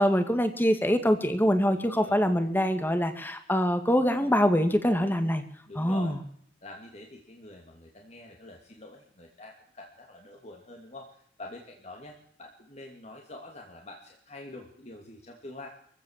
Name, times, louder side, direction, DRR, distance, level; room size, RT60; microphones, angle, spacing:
voice 1, 0.0-5.4 5.8-6.2, equal, 10° left, 8 dB, 2.1 m, -24 dB
voice 2, 1.7-2.2 5.7-6.2 6.6-15.7, left 2 dB, 40° left, 1 dB, 2.6 m, -46 dB
24.0 x 15.5 x 7.5 m, 0.67 s
head